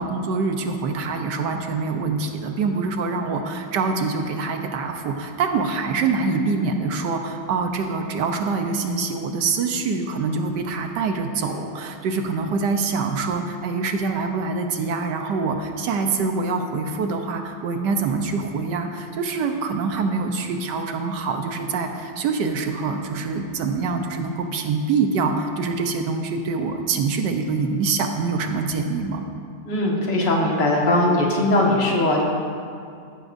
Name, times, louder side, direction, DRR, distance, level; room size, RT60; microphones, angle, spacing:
voice 1, 0.0-29.2, right 4 dB, 70° right, 5 dB, 1.3 m, -25 dB
voice 2, 29.6-32.2, left 1 dB, 70° left, -2 dB, 2.2 m, -20 dB
15.0 x 11.0 x 2.6 m, 2.3 s
omnidirectional pair, 2.0 m